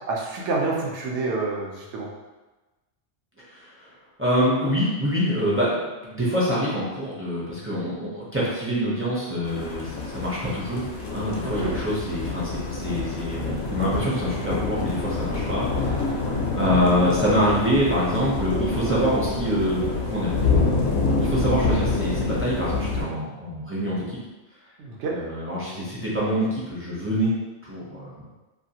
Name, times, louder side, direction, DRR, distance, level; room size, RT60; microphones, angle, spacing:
voice 1, 0.1-2.1 11.4-11.7 24.8-25.1, right 3 dB, 85° right, -2 dB, 0.9 m, -28 dB
voice 2, 4.2-10.9 11.1-20.3 21.2-24.0 25.1-27.3 27.6-28.2, equal, 20° right, -8 dB, 0.4 m, -25 dB
sound 1, 9.4-23.0, left 3 dB, 70° left, 0.8 m, -27 dB
2.5 x 2.3 x 2.7 m, 1.1 s
omnidirectional pair, 1.2 m